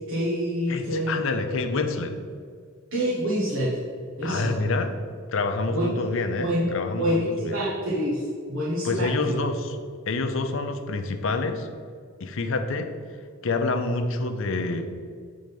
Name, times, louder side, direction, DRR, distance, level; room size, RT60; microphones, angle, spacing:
voice 1, 0.1-1.2 2.9-3.7 4.2-4.6 5.7-6.0 6.4-6.7 7.0-9.3, equal, 80° right, -7 dB, 1.4 m, -26 dB
voice 2, 0.7-2.2 4.2-4.9 5.3-7.5 8.8-9.8 10.1-11.7 12.2-12.9 13.4-14.9, left 3 dB, 70° left, 7 dB, 0.6 m, -27 dB
7.6 x 3.9 x 5.3 m, 2.1 s
head